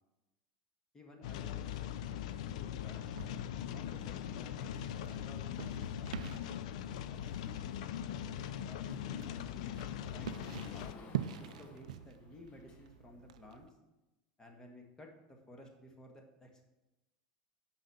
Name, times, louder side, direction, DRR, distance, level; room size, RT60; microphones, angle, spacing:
voice 1, 0.9-3.1 3.6-7.6 8.3-13.8 14.4-16.7, left 1 dB, 15° left, 2 dB, 1.6 m, -56 dB
sound 1, 1.2-10.9, left 10 dB, 75° left, 0.4 m, -41 dB
sound 2, 3.1-13.7, right 11 dB, 85° right, 0.3 m, -47 dB
Sliding door, 8.2-13.1, left 4 dB, 40° left, 1.0 m, -56 dB
6.3 x 5.2 x 6.8 m, 1.0 s
supercardioid pair, 105°, 4 cm